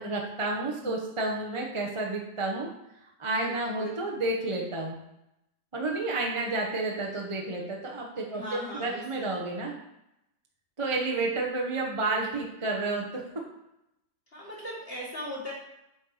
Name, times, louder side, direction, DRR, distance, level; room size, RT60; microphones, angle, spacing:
voice 1, 0.0-2.7 3.2-5.0 5.7-9.8 10.8-13.2, right 2 dB, 25° right, -1 dB, 0.9 m, -30 dB
voice 2, 3.4-4.0 8.3-9.4 14.3-15.5, equal, 35° left, -6 dB, 2.2 m, -39 dB
8.5 x 4.5 x 4.9 m, 0.86 s
omnidirectional pair, 1.8 m